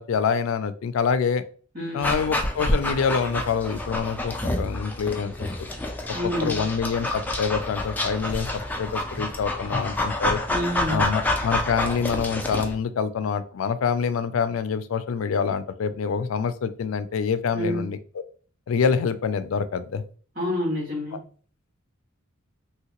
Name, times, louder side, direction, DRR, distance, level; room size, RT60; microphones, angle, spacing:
voice 1, 0.0-1.4 1.9-5.5 6.4-8.5 8.8-10.4 10.9-18.0 18.7-20.0, left 6 dB, 90° left, 12 dB, 0.4 m, -26 dB
voice 2, 1.7-2.1 6.1-6.7 10.5-11.1 17.5-17.8 20.4-21.2, left 1 dB, 45° right, -4 dB, 1.7 m, -28 dB
Dog, 2.0-12.7, left 1 dB, 10° left, 0.3 m, -28 dB
2.9 x 2.8 x 2.9 m, 0.42 s
head